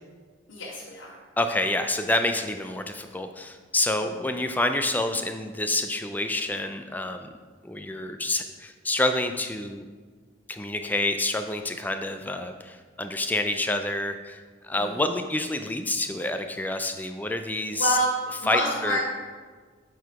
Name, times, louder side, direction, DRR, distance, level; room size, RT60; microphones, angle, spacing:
voice 1, 0.5-1.2 4.0-4.1 14.7-15.1 17.7-18.1 18.4-19.0, equal, 80° left, -10 dB, 2.3 m, -28 dB
voice 2, 1.4-7.3 7.6-9.9 10.5-14.4 14.6-18.0 18.5-19.0, left 2 dB, 10° left, 7 dB, 0.3 m, -28 dB
8.0 x 4.7 x 4.7 m, 1.5 s
head